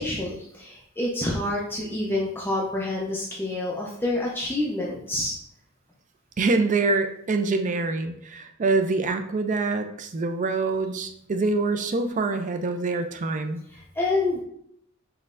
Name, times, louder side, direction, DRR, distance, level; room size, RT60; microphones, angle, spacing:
voice 1, 0.0-5.3 13.7-14.4, left 2 dB, 10° left, -3 dB, 0.5 m, -28 dB
voice 2, 6.4-13.6, right 3 dB, 35° right, 7 dB, 0.4 m, -25 dB
5.4 x 3.1 x 2.5 m, 0.69 s
head